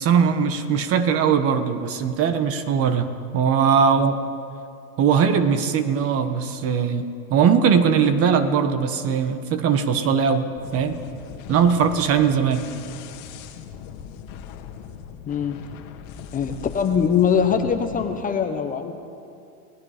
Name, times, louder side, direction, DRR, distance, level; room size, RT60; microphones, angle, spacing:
voice 1, 0.0-4.2 5.0-10.4 10.7-11.0 11.5-12.7, right 7 dB, 30° right, 10 dB, 1.2 m, -20 dB
sound 1, 10.6-18.2, left 8 dB, 45° left, 1.7 m, -40 dB
voice 2, 15.3-15.6 16.3-19.0, left 7 dB, 20° left, 6 dB, 1.0 m, -22 dB
29.5 x 18.0 x 5.1 m, 2.5 s
supercardioid pair, 140°, 45 cm